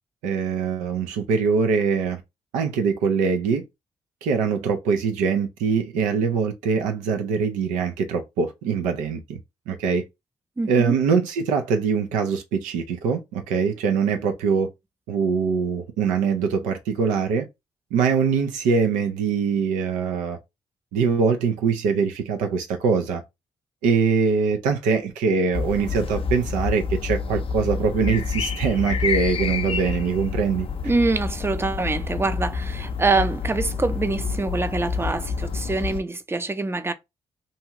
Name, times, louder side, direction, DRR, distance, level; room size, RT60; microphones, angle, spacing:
voice 1, 0.2-2.2 2.5-3.6 4.2-9.4 9.7-10.0 10.7-14.7 15.1-17.5 17.9-20.4 20.9-23.2 23.8-30.7, right 5 dB, 85° right, 0.5 m, -23 dB
voice 2, 10.6-10.9 30.8-36.9, right 3 dB, 20° right, 0.5 m, -25 dB
sound 1, 25.5-36.0, left 5 dB, 45° left, 0.5 m, -28 dB
2.7 x 2.4 x 2.9 m
hypercardioid pair, 45°, 13 cm